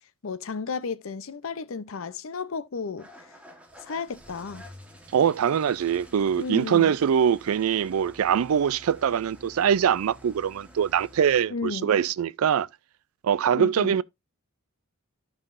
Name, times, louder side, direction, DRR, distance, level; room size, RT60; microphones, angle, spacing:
voice 1, 0.2-3.1 3.8-4.7 6.3-7.0 11.5-11.9 13.5-14.0, left 4 dB, 70° left, 0.6 m, -33 dB
Engine starting / Idling, 3.0-11.4, equal, 5° right, 1.2 m, -50 dB
voice 2, 5.1-12.7 13.2-14.0, right 8 dB, 90° right, 0.4 m, -23 dB
12.0 x 5.6 x 2.5 m
head